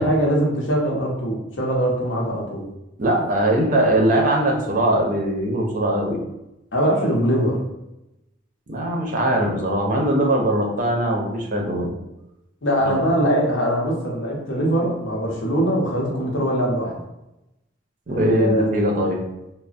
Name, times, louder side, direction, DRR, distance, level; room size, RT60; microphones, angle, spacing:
voice 1, 0.0-2.7 6.7-7.6 12.6-17.0 18.1-18.7, equal, 75° left, -2 dB, 0.8 m, -22 dB
voice 2, 3.0-6.2 8.7-11.9 12.8-12.9 18.1-19.2, right 1 dB, 45° right, 1 dB, 0.5 m, -21 dB
3.1 x 2.0 x 2.5 m, 0.91 s
head